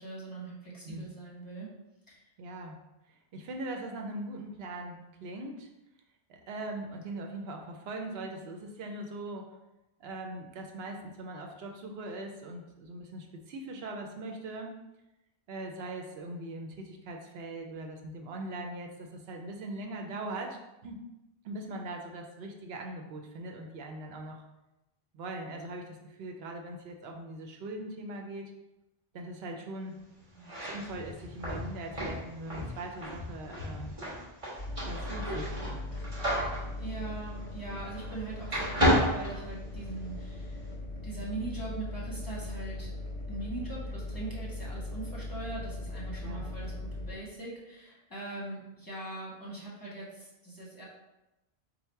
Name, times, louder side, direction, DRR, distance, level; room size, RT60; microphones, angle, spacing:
voice 1, 0.0-1.7 2.1-2.2 30.3-30.5 36.8-40.6 41.0-42.9 43.3-50.8, right 3 dB, 20° left, -6 dB, 0.9 m, -41 dB
voice 2, 2.4-2.8 3.1-5.7 6.3-9.5 10.0-14.8 15.5-21.1 21.4-24.4 25.1-28.5 29.1-30.0 30.6-34.0 34.8-35.9 46.2-46.5, right 2 dB, 80° right, 2 dB, 0.8 m, -41 dB
sound 1, 30.4-38.2 38.5-40.1, equal, 35° right, 1.2 m, -32 dB
sound 2, 34.6-47.1, left 2 dB, 45° left, 0.6 m, -39 dB
4.1 x 2.1 x 4.4 m, 0.95 s
omnidirectional pair, 1.1 m